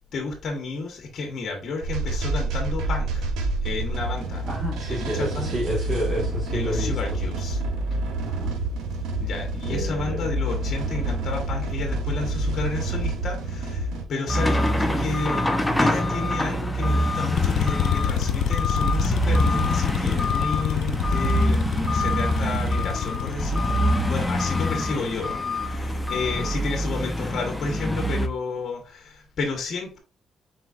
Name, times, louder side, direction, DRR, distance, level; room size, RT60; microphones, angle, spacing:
voice 1, 0.1-3.3 3.6-4.5 4.9-5.6 6.5-7.6 9.2-15.5 15.8-30.0, left 3 dB, 60° left, 1.3 m, -31 dB
sound 1, 1.8-14.1, right 2 dB, 85° right, 1.0 m, -28 dB
voice 2, 4.4-7.0 8.3-8.6 9.6-10.3, right 1 dB, 30° right, 1.7 m, -29 dB
sound 2, 14.3-28.3, equal, 10° left, 0.7 m, -25 dB
sound 3, 17.4-25.4, left 8 dB, 85° left, 0.4 m, -28 dB
4.5 x 4.0 x 2.5 m
cardioid pair, 90°, 0 cm